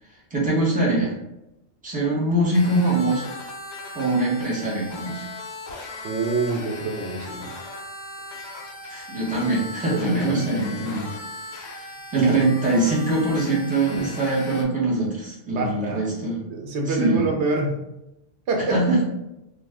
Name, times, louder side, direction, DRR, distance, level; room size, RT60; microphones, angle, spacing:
voice 1, 0.3-1.2 1.8-3.3 3.9-5.2 8.9-11.1 11.7-16.4 16.9-17.3 18.7-19.0, right 2 dB, 10° right, -6 dB, 0.8 m, -23 dB
sound 1, 2.5-14.6, left 2 dB, 50° left, 0.7 m, -38 dB
voice 2, 6.0-7.5 9.9-10.4 12.2-12.4 15.5-16.0 16.5-17.8 18.5-18.8, right 3 dB, 85° right, 1 dB, 0.9 m, -26 dB
2.5 x 2.3 x 3.4 m, 0.90 s
omnidirectional pair, 1.1 m